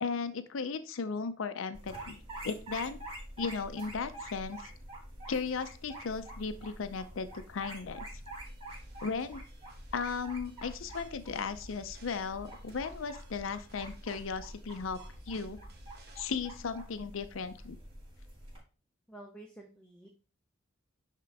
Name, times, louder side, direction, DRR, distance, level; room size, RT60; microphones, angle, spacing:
voice 1, 0.0-3.0 3.4-4.7 5.3-8.0 9.0-9.4 9.9-15.0 15.3-15.6 16.2-17.8, left 5 dB, 70° left, 10 dB, 0.5 m, -36 dB
sound 1, 1.7-18.6, right 1 dB, 30° right, 4.2 m, -47 dB
sound 2, 8.2-16.2, right 1 dB, 50° right, 1.4 m, -55 dB
voice 2, 19.1-20.1, right 2 dB, 5° left, 1 dB, 0.8 m, -50 dB
10.5 x 3.7 x 3.5 m, 0.37 s
head